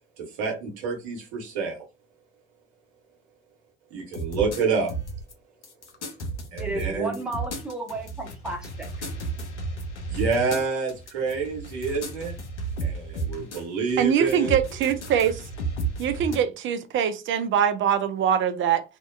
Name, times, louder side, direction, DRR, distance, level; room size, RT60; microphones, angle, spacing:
voice 1, 0.2-1.8 3.9-4.9 6.5-7.2 10.1-12.3 12.8-14.6, right 4 dB, 65° right, 1.0 m, -28 dB
sound 1, 4.1-5.3 5.6-13.6 13.9-16.4, right 2 dB, 90° left, 0.5 m, -33 dB
voice 2, 6.6-8.9, right 2 dB, ahead, 0.9 m, -33 dB
voice 3, 14.0-15.4 16.0-18.8, right 8 dB, 35° right, 0.4 m, -23 dB
2.6 x 2.1 x 2.3 m
figure-of-eight pair, 55°, 34 cm